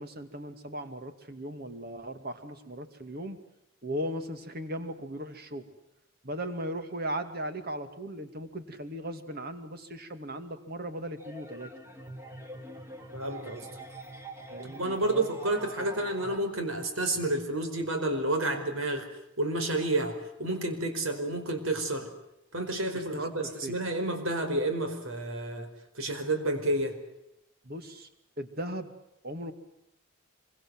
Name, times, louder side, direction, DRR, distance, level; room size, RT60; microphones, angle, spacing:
voice 1, 0.0-3.4 3.8-5.7 6.2-11.7 14.5-15.3 23.1-23.8 27.6-28.1 28.4-28.9 29.2-29.5, equal, 45° right, 8 dB, 2.5 m, -37 dB
sound 1, 11.2-16.4, right 1 dB, 10° right, 2.3 m, -45 dB
voice 2, 13.1-13.7 14.6-19.1 19.4-22.1 22.5-25.7 26.0-26.9, right 2 dB, 65° right, 6 dB, 4.9 m, -30 dB
26.0 x 24.0 x 7.9 m, 0.82 s
head